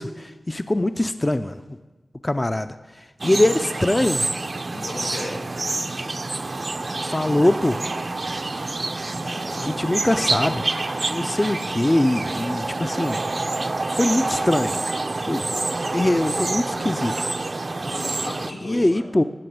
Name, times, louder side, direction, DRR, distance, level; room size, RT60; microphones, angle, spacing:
voice 1, 0.0-1.6 2.2-2.7 3.2-4.3 7.0-7.8 9.6-10.6 11.0-13.2 13.9-14.8 15.3-15.5 15.9-17.3 18.6-19.2, left 1 dB, 20° left, 10 dB, 0.4 m, -22 dB
sound 1, 3.2-18.5, right 2 dB, 40° right, 0.5 m, -27 dB
voice 2, 4.7-5.4 9.2-9.9 17.9-19.2, left 1 dB, 85° left, -3 dB, 5.4 m, -35 dB
16.5 x 6.8 x 9.3 m, 1.2 s
wide cardioid pair, 95°, 0 cm